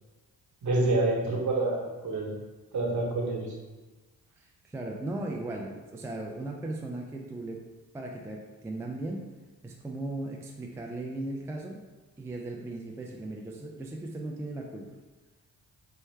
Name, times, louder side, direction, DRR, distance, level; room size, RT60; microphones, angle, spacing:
voice 1, 0.6-2.4 2.7-3.5, right 2 dB, 50° right, -2 dB, 1.2 m, -27 dB
voice 2, 4.4-7.6 7.9-9.2 9.6-11.8 12.2-14.9, right 2 dB, 10° right, 0 dB, 0.4 m, -37 dB
4.4 x 2.2 x 3.3 m, 1.2 s
supercardioid pair, 60°, 38 cm